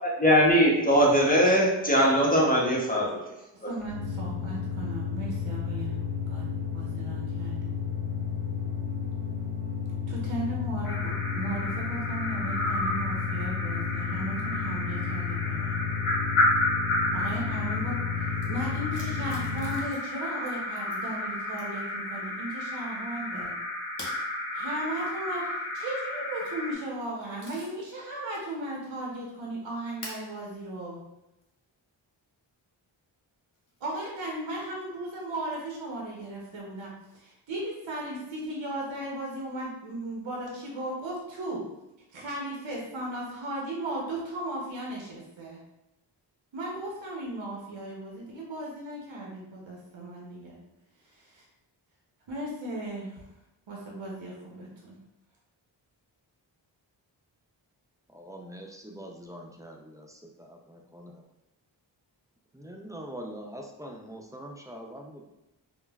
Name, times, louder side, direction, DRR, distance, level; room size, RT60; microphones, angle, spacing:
voice 1, 0.0-3.2 3.6-3.7, equal, 20° left, -3 dB, 0.8 m, -21 dB
voice 2, 3.6-6.5 6.7-7.6 10.1-15.8 17.1-18.0 18.5-23.5 24.5-31.0 33.8-41.6 42.1-45.6 46.5-50.6 51.1-51.4 52.3-53.2 53.7-55.0, right 1 dB, 65° right, -3 dB, 0.8 m, -36 dB
sound 1, 3.8-19.9, left 6 dB, 40° right, 1.5 m, -32 dB
sound 2, 10.8-26.8, left 1 dB, 80° left, 0.8 m, -32 dB
sound 3, 18.0-18.1 18.3-18.5 18.9-20.2 20.5-21.0 21.5-21.9 24.0-24.2 26.1-26.5 27.0-27.9 28.4-28.5 30.0-30.3 31.4-31.5 33.5-34.0, left 1 dB, 40° left, 1.0 m, -45 dB
voice 3, 58.1-61.2 62.5-65.3, equal, 10° right, 1 dB, 0.3 m, -43 dB
3.0 x 2.2 x 2.3 m, 0.92 s
cardioid pair, 40°, 48 cm